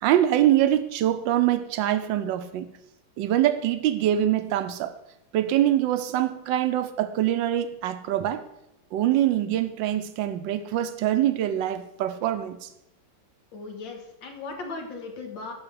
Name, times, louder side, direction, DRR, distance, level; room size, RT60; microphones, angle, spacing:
voice 1, 0.0-2.7 3.2-4.9 5.3-8.4 8.9-12.7, right 12 dB, 85° right, 10 dB, 1.4 m, -24 dB
voice 2, 13.5-15.5, left 3 dB, 80° left, 3 dB, 2.2 m, -37 dB
11.5 x 4.0 x 6.9 m, 0.86 s
omnidirectional pair, 2.0 m